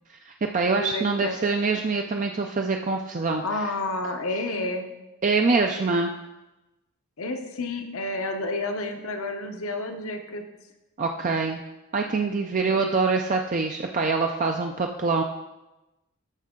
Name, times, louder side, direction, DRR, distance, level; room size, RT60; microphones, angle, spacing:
voice 1, 0.2-3.6 5.2-6.1 11.0-11.6 11.9-15.2, right 4 dB, 35° right, 3 dB, 0.4 m, -25 dB
voice 2, 0.8-1.4 1.7-1.8 3.4-4.9 7.2-10.4 12.7-12.8, left 2 dB, 65° left, 6 dB, 0.9 m, -30 dB
13.0 x 5.2 x 3.7 m, 1.0 s
head